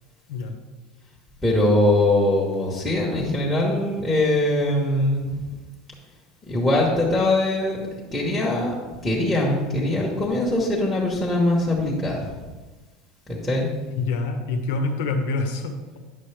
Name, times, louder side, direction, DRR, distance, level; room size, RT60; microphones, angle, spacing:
voice 1, 1.4-5.4 6.5-7.8 8.1-8.7 9.0-12.4 13.3-13.7, left 1 dB, 5° left, -7 dB, 1.0 m, -22 dB
voice 2, 14.0-16.0, left 3 dB, 85° left, 6 dB, 1.1 m, -26 dB
9.3 x 6.3 x 3.3 m, 1.2 s
cardioid pair, 170°, 0 cm